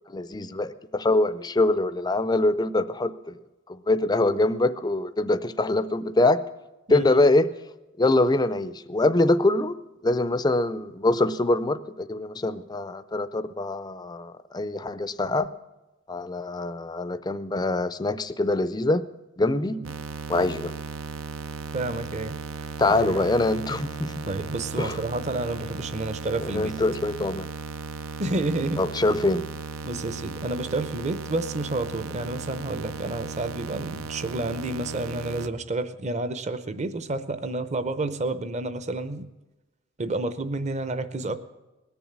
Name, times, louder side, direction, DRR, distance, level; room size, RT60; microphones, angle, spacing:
voice 1, 0.1-3.3 3.7-6.4 6.9-7.5 8.0-9.8 10.0-15.5 16.1-19.1 19.4-19.8 20.3-20.7 22.8-24.3 24.8-25.0 26.4-27.5 28.8-29.5, left 2 dB, 20° left, 13 dB, 0.4 m, -24 dB
voice 2, 6.9-7.2 19.7-19.9 21.7-23.2 24.2-26.7 28.2-28.8 29.8-39.3 40.0-41.4, right 2 dB, 35° right, 12 dB, 0.7 m, -30 dB
sound 1, 19.8-35.5, right 4 dB, 85° right, 0.6 m, -36 dB
19.5 x 7.0 x 8.8 m, 1.1 s
head